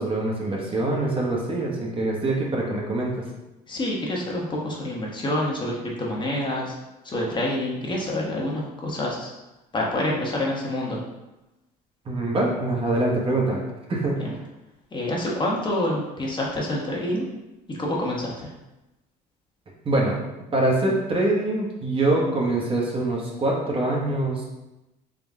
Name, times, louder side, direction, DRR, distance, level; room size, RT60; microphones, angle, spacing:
voice 1, 0.0-3.2 12.1-13.6 13.9-14.2 19.8-20.2 20.5-24.4, right 2 dB, 30° right, -2 dB, 1.1 m, -24 dB
voice 2, 3.7-6.7 7.0-9.3 9.7-11.0 14.2-14.3 14.9-17.2 17.7-18.5, left 1 dB, 30° left, -3 dB, 1.0 m, -27 dB
3.7 x 3.1 x 3.5 m, 0.99 s
supercardioid pair, 90°, 17 cm